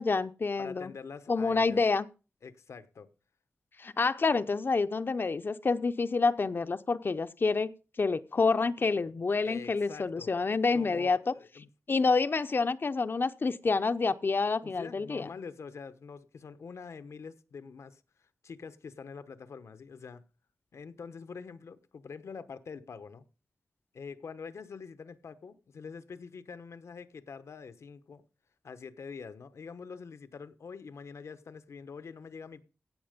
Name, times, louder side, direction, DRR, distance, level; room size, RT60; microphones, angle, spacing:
voice 1, 0.0-0.9 1.3-2.1 3.8-7.7 8.0-11.3 11.9-15.3, left 4 dB, 50° left, 0.7 m, -28 dB
voice 2, 0.6-1.8 2.4-3.1 9.4-10.3 10.7-11.7 14.6-20.2 20.7-23.2 23.9-28.2 28.6-32.6, left 5 dB, 80° left, 1.1 m, -45 dB
17.0 x 6.4 x 5.2 m
wide cardioid pair, 85°, 5 cm